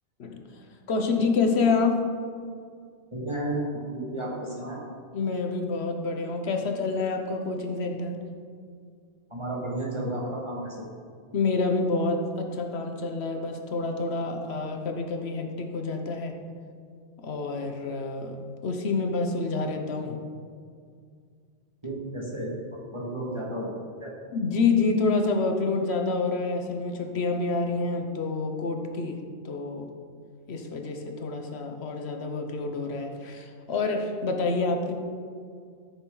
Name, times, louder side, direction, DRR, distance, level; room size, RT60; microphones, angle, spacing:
voice 1, 0.9-2.0 5.1-8.2 11.3-16.3 17.2-20.2 24.3-29.2 29.4-29.9 30.5-34.9, left 3 dB, 70° left, 4 dB, 1.2 m, -27 dB
voice 2, 3.1-4.8 9.3-10.8 21.8-22.5 22.9-24.1, right 1 dB, 25° right, -5 dB, 2.2 m, -32 dB
14.0 x 6.8 x 4.0 m, 2.2 s
omnidirectional pair, 1.1 m